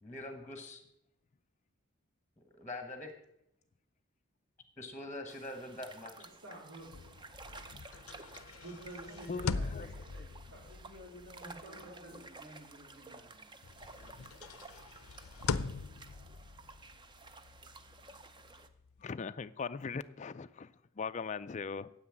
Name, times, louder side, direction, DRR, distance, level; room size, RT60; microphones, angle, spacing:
voice 1, 0.0-0.8 2.4-3.1 4.8-6.1, left 1 dB, 10° left, 1.2 m, -43 dB
sound 1, 5.3-18.7, right 3 dB, 20° right, 0.7 m, -53 dB
voice 2, 6.2-7.0 8.6-10.6 11.4-12.2, right 1 dB, 85° right, 4.4 m, -50 dB
sound 2, 6.8-13.3 13.6-19.0, left 4 dB, 85° left, 0.6 m, -42 dB
voice 3, 9.3-9.9 19.0-21.9, left 5 dB, 35° left, 0.4 m, -40 dB
voice 4, 10.7-13.6 14.0-14.4, left 1 dB, 50° right, 2.4 m, -55 dB
9.9 x 8.0 x 8.6 m
head